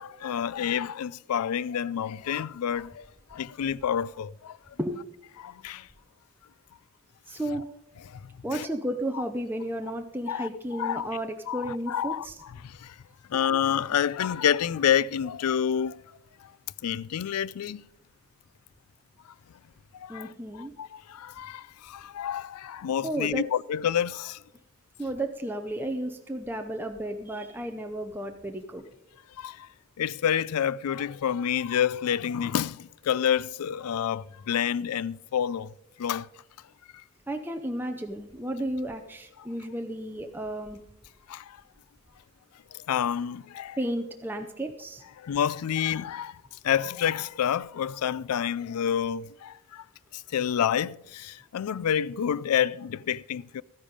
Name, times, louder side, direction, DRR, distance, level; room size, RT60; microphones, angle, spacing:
voice 1, 0.0-3.1 3.3-4.6 5.4-5.9 8.1-8.2 8.5-8.7 10.3-11.1 11.5-12.3 12.6-13.0 13.3-16.0 16.4-16.5 16.8-17.9 19.9-20.3 20.6-24.4 29.4-29.7 30.0-35.7 36.0-36.3 41.3-41.6 42.7-43.8 45.2-49.8 50.1-53.6, left 9 dB, 90° left, 0.4 m, -28 dB
voice 2, 7.3-7.7 8.4-12.4 13.3-13.4 20.1-20.7 23.0-23.5 25.0-28.8 37.3-40.8 43.8-45.0, right 1 dB, 10° right, 0.6 m, -33 dB
12.5 x 10.0 x 5.2 m
head